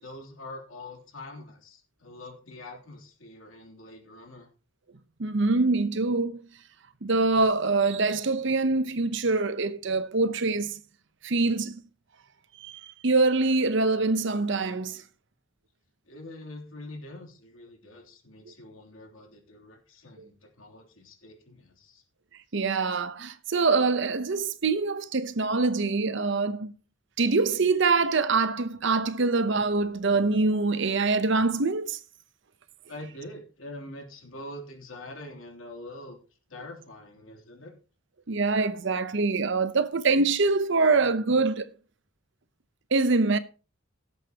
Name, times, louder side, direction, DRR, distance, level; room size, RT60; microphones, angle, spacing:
voice 1, 0.0-4.5 16.1-22.0 32.9-36.2 36.5-37.7, left 1 dB, 85° left, 3.1 m, -44 dB
voice 2, 5.2-6.4 7.0-10.8 11.2-11.8 12.6-15.0 22.5-26.7 27.2-32.0 38.3-41.7 42.9-43.4, right 3 dB, 65° right, 0.8 m, -24 dB
17.0 x 8.2 x 2.9 m
head